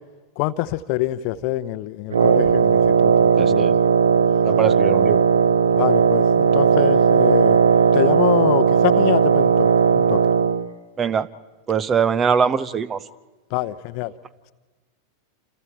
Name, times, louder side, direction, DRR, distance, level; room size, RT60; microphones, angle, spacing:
voice 1, 0.4-3.8 5.8-7.6 7.9-10.2 13.5-14.1, left 16 dB, 45° left, 15 dB, 0.8 m, -25 dB
Wind instrument woodwind instrument, 2.1-10.7, right 6 dB, 65° right, 0.8 m, -17 dB
voice 2, 3.4-3.7 4.4-5.3 11.0-11.3 11.7-13.0, right 6 dB, 25° right, 19 dB, 0.7 m, -22 dB
28.5 x 28.0 x 4.5 m, 1.3 s
figure-of-eight pair, 90°, 0 cm